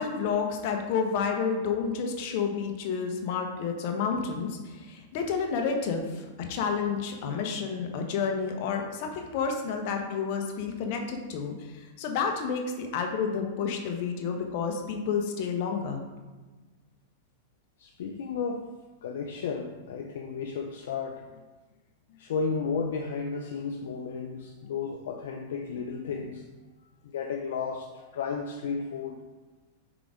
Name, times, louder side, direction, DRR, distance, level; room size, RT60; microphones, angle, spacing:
voice 1, 0.0-16.0, left 6 dB, 55° left, 3 dB, 1.0 m, -30 dB
voice 2, 17.8-18.7 19.0-21.3 22.2-26.4 27.0-29.2, left 5 dB, 75° left, 3 dB, 0.5 m, -33 dB
4.9 x 3.9 x 4.9 m, 1.3 s
hypercardioid pair, 120°, 0 cm